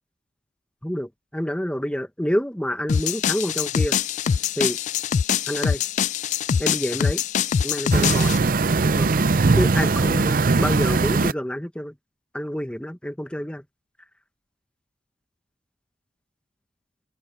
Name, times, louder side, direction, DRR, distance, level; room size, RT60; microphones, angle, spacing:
voice 1, 0.8-4.0 4.6-4.8 5.5-5.8 6.6-7.2 7.6-8.4 8.8-9.1 9.6-11.9 12.3-13.6, equal, 5° left, 1.0 m, -28 dB
sound 1, 2.9-8.4, left 7 dB, 45° left, 0.3 m, -24 dB
sound 2, 7.9-11.3, right 3 dB, 55° right, 0.6 m, -20 dB
head